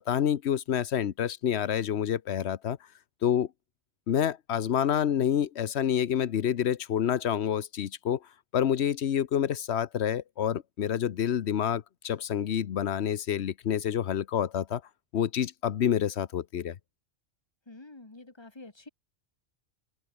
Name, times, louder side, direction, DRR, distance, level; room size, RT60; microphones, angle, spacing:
voice 1, 0.1-2.8 3.2-3.5 4.1-8.2 8.5-14.8 15.1-16.8, left 9 dB, 85° left, 1.1 m, -28 dB
voice 2, 17.7-18.9, left 2 dB, 25° left, 1.9 m, -48 dB
open air
omnidirectional pair, 1.1 m